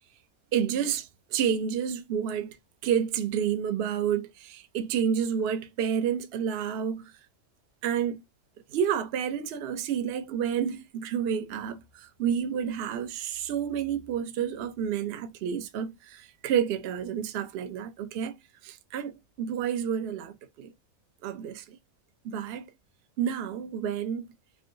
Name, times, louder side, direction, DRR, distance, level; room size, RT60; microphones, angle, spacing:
voice 1, 0.5-2.6 2.8-7.1 7.8-8.2 8.7-18.3 18.6-20.7 21.2-21.8 22.2-22.7 23.2-24.3, right 8 dB, 60° right, 0.7 m, -30 dB
3.6 x 2.6 x 2.5 m
omnidirectional pair, 1.5 m